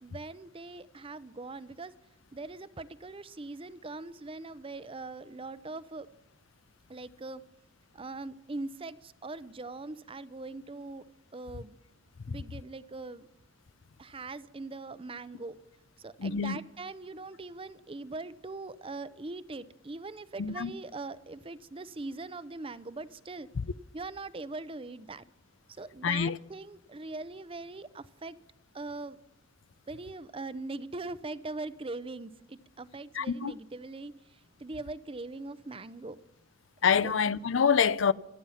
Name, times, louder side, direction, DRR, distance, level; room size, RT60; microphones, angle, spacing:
voice 1, 0.0-1.9 2.3-6.1 6.9-7.4 7.9-11.0 11.3-11.8 12.3-13.3 14.0-15.6 16.0-23.5 23.9-25.2 25.8-28.4 28.7-29.2 29.9-34.1 34.6-36.2 36.9-37.1, right 3 dB, 30° right, 0.6 m, -41 dB
voice 2, 16.2-16.6 20.4-20.7 26.0-26.4 33.1-33.5 36.8-38.1, left 6 dB, 80° left, 0.6 m, -26 dB
26.0 x 9.2 x 5.7 m
head